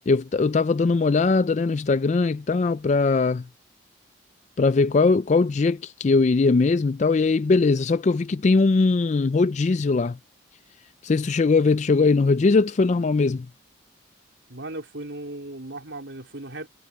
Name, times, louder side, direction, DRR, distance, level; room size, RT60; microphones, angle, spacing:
voice 1, 0.1-3.4 4.6-10.2 11.0-13.5, left 3 dB, 40° left, 0.4 m, -20 dB
voice 2, 14.5-16.7, right 2 dB, 75° right, 3.8 m, -36 dB
head